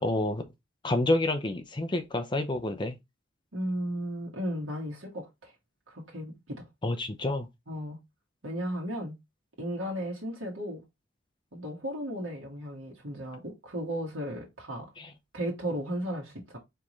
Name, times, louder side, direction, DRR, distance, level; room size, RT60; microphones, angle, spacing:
voice 1, 0.0-0.4 0.8-3.0 6.8-7.5 15.0-15.1, left 2 dB, 25° left, 0.6 m, -28 dB
voice 2, 3.5-5.5 5.9-6.6 7.7-8.0 8.4-9.1 9.6-10.8 11.5-14.8 15.3-16.6, equal, 80° right, 1.6 m, -35 dB
4.6 x 3.6 x 3.1 m
head